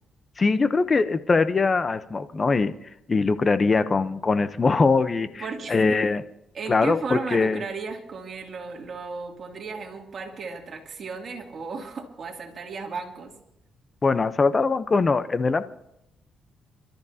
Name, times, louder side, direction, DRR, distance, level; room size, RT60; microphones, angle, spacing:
voice 1, 0.4-2.7 3.1-6.2 6.7-7.6 14.0-15.6, left 4 dB, 30° left, 12 dB, 0.8 m, -22 dB
voice 2, 5.2-6.0 6.5-13.3, right 4 dB, 45° right, 1 dB, 2.6 m, -35 dB
27.5 x 13.5 x 2.8 m, 0.83 s
cardioid pair, 90°, 0 cm